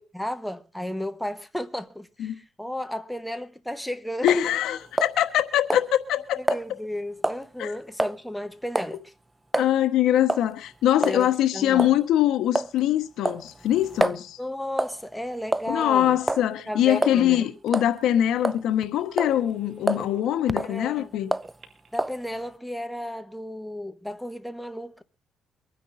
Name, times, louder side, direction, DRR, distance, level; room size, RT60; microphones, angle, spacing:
voice 1, 0.1-4.6 6.4-9.1 11.0-11.9 14.4-16.2 16.7-17.5 20.6-21.1 21.9-25.0, left 1 dB, 5° left, 1.2 m, -33 dB
voice 2, 4.2-6.4 7.6-7.7 9.6-14.4 15.7-21.3, left 12 dB, 85° left, 1.3 m, -23 dB
sound 1, 4.3-4.5 5.0-5.4 5.7-5.9 6.5-6.6 7.2-7.4 8.0-8.2 8.7-9.0 9.5-9.7 10.3-10.5 11.0-11.2 11.8-12.0 12.5-12.8 13.2-14.2 14.8-15.0 15.5-15.9 16.3-16.5 17.0-17.2 17.7-17.9 18.4-18.8 19.2-19.4 19.9-20.1 20.5-20.7 21.3-21.5 22.0-22.2, right 1 dB, 10° right, 0.6 m, -26 dB
Telephone, 16.4-17.5 18.0-18.1 18.5-18.6 19.1-20.2 21.4-22.0, left 1 dB, 45° right, 2.5 m, -47 dB
24.5 x 10.0 x 2.7 m
cardioid pair, 90°, 0 cm